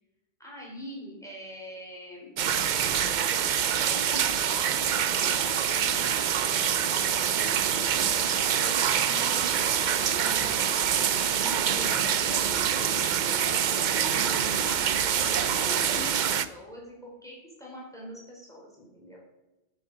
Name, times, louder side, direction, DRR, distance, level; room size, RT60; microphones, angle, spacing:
voice 1, 0.4-2.4 3.5-7.7 8.2-10.6 11.3-13.6 13.9-19.2, equal, 5° left, -4 dB, 4.5 m, -44 dB
sound 1, 2.4-16.5, right 8 dB, 55° right, 0.6 m, -25 dB
9.2 x 7.9 x 6.6 m, 1.0 s
omnidirectional pair, 1.1 m